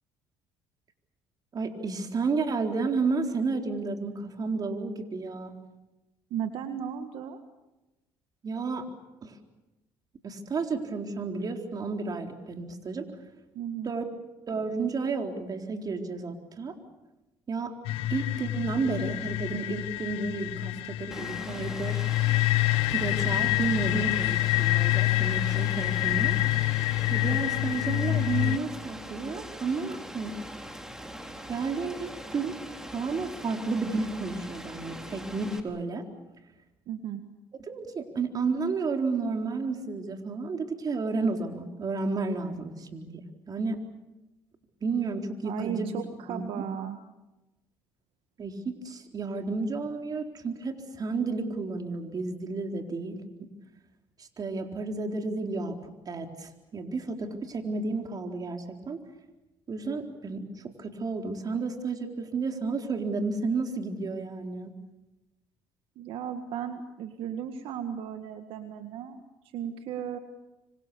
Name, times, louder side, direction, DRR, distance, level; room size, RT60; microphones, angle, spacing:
voice 1, 1.5-5.5 8.4-8.9 9.2-9.4 10.2-13.0 13.8-14.0 14.5-16.7 17.5-17.7 18.1-22.0 22.9-26.3 27.1-30.3 31.5-32.5 32.9-36.1 37.7-43.8 44.8-45.9 46.3-46.6 48.4-53.5 54.2-55.8 56.1-59.0 59.7-60.5 60.8-64.7, right 4 dB, 40° right, 4 dB, 4.0 m, -31 dB
voice 2, 6.3-7.4 13.5-13.9 36.9-37.2 45.4-47.0 66.0-69.2 69.5-70.2, right 9 dB, 70° right, 7 dB, 1.8 m, -35 dB
sound 1, 17.8-28.6, left 17 dB, 75° left, 1.1 m, -27 dB
Rain, 21.1-35.6, equal, 5° right, 3.7 m, -42 dB
26.5 x 25.5 x 7.0 m, 1.0 s
supercardioid pair, 75°, 10 cm